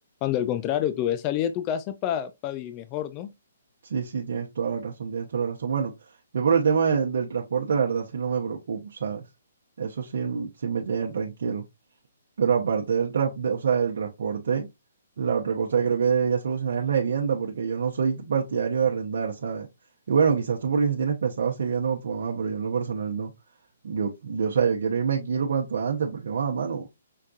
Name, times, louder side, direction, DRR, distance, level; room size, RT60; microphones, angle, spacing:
voice 1, 0.2-3.3, left 11 dB, 25° left, 0.3 m, -28 dB
voice 2, 3.8-5.9 6.3-9.3 9.8-11.6 12.4-14.7 15.2-19.7 20.1-23.3 23.8-26.9, right 6 dB, 70° right, 0.8 m, -26 dB
5.7 x 2.3 x 2.4 m
hypercardioid pair, 150°, 0 cm